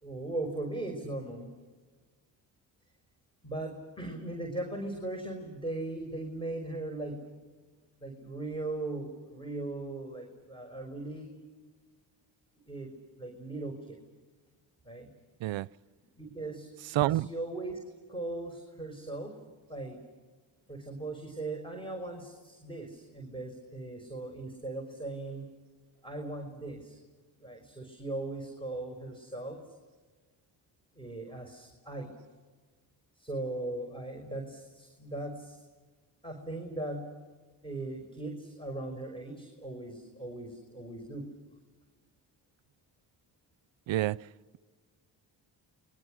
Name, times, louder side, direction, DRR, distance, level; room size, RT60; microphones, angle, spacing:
voice 1, 0.0-1.5 3.4-7.2 8.0-11.3 12.7-12.9 13.2-14.0 14.8-15.1 16.2-16.7 17.1-17.8 18.1-19.4 19.7-20.0 20.7-25.5 26.0-27.0 27.4-29.8 30.9-32.1 33.2-35.6 36.2-37.1 37.6-41.3, right 2 dB, 10° left, 5.4 m, -38 dB
voice 2, 17.0-17.3 43.9-44.2, right 15 dB, 70° right, 0.6 m, -27 dB
29.5 x 22.5 x 6.4 m
supercardioid pair, 60°, 46 cm